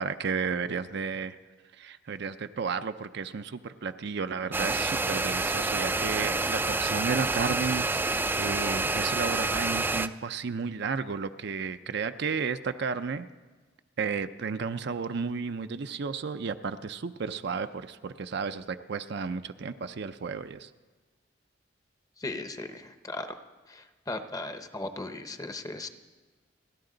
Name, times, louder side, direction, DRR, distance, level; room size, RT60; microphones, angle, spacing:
voice 1, 0.0-1.4 1.8-13.3 14.0-20.7, right 5 dB, 60° right, 9 dB, 0.5 m, -33 dB
sound 1, 4.5-10.1, right 3 dB, 10° right, 0.4 m, -28 dB
voice 2, 22.2-23.4 23.7-25.9, left 2 dB, 20° left, 8 dB, 0.8 m, -37 dB
30.0 x 11.0 x 3.9 m, 1.3 s
head